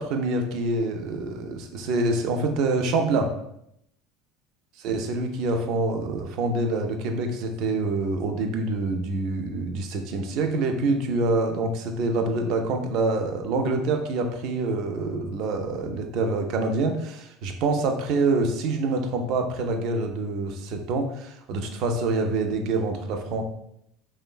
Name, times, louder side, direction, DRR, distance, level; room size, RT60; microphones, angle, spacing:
voice 1, 0.0-3.3 4.8-23.4, right 3 dB, 60° right, 5 dB, 0.4 m, -26 dB
3.0 x 2.1 x 2.2 m, 0.76 s
hypercardioid pair, 80°, 0 cm